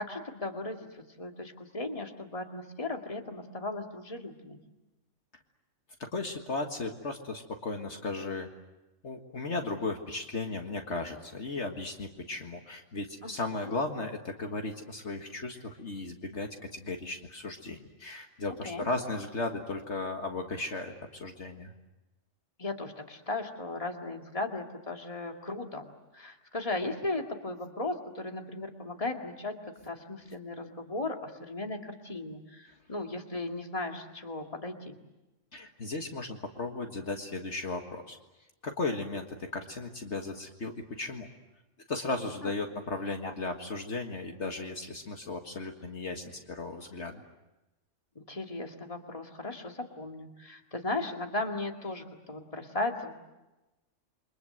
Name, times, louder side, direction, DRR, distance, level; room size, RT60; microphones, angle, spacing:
voice 1, 0.0-4.6 13.2-13.3 13.6-13.7 18.6-18.9 22.6-25.9 26.1-29.6 29.8-35.0 42.4-42.5 43.2-43.3 48.2-53.1, left 2 dB, 25° left, 3 dB, 2.3 m, -36 dB
voice 2, 6.1-8.5 9.0-21.7 35.5-38.2 38.6-39.3 39.5-41.3 41.9-47.2, left 3 dB, 60° left, 4 dB, 2.0 m, -36 dB
29.0 x 24.0 x 7.8 m, 1.0 s
omnidirectional pair, 1.3 m